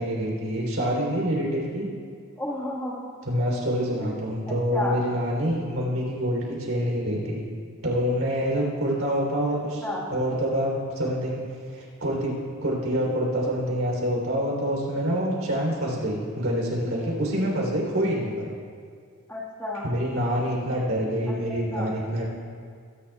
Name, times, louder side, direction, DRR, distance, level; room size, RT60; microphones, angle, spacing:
voice 1, 0.0-1.9 3.2-7.4 7.8-11.4 11.7-12.3 12.6-18.5 19.8-22.3, equal, 70° right, -2 dB, 3.4 m, -26 dB
voice 2, 2.4-3.1 4.0-4.2 4.5-5.0 9.8-10.1 16.8-17.1 19.3-19.8 21.7-21.9, left 1 dB, 10° left, -5 dB, 1.6 m, -32 dB
23.0 x 11.0 x 2.4 m, 2.1 s
head